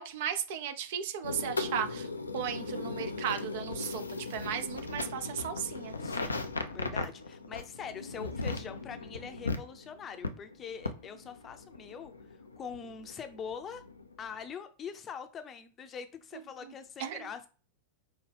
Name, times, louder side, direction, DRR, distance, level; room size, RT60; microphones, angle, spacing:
voice 1, 0.0-2.1 2.3-4.0 4.3-5.9 17.0-17.3, right 9 dB, 50° right, 9 dB, 0.5 m, -35 dB
sound 1, 1.2-14.4, left 3 dB, 80° left, 0.4 m, -38 dB
voice 2, 6.0-6.4 6.7-12.1 12.6-13.8 14.2-17.5, left 6 dB, 25° left, 9 dB, 0.6 m, -43 dB
5.1 x 2.3 x 3.3 m, 0.35 s
figure-of-eight pair, 90°, 0 cm